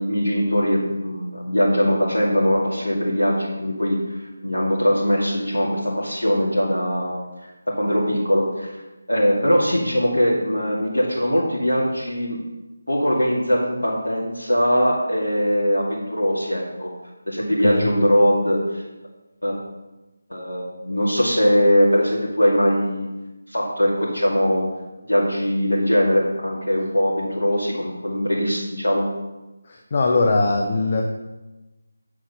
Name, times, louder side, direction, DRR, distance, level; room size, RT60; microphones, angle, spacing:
voice 1, 0.0-7.2 7.8-8.8 9.1-12.4 12.9-16.9 17.3-18.8 19.4-19.6 20.3-23.1 23.5-24.7 25.0-29.1, equal, 70° left, -6 dB, 2.3 m, -21 dB
voice 2, 29.6-31.0, left 3 dB, 30° left, 1 dB, 0.8 m, -20 dB
8.4 x 7.2 x 5.6 m, 1.1 s
figure-of-eight pair, 160°, 0 cm